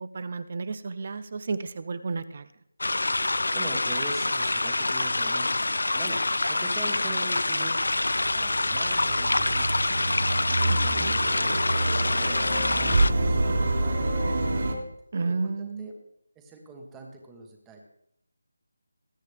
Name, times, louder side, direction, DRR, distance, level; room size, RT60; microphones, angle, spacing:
voice 1, 0.0-2.5 10.7-11.2 15.1-15.9, right 4 dB, 30° right, 14 dB, 0.6 m, -32 dB
sound 1, 2.8-13.1, left 2 dB, 85° left, 0.5 m, -26 dB
voice 2, 3.5-8.0 8.3-10.1 10.5-11.8 12.0-13.4 13.7-14.8 15.3-15.9 16.3-17.8, right 2 dB, 5° right, 2 dB, 1.3 m, -42 dB
sound 2, 7.6-14.7, right 2 dB, 55° right, 2.8 m, -27 dB
20.5 x 9.4 x 3.4 m, 0.76 s
figure-of-eight pair, 175°, 0 cm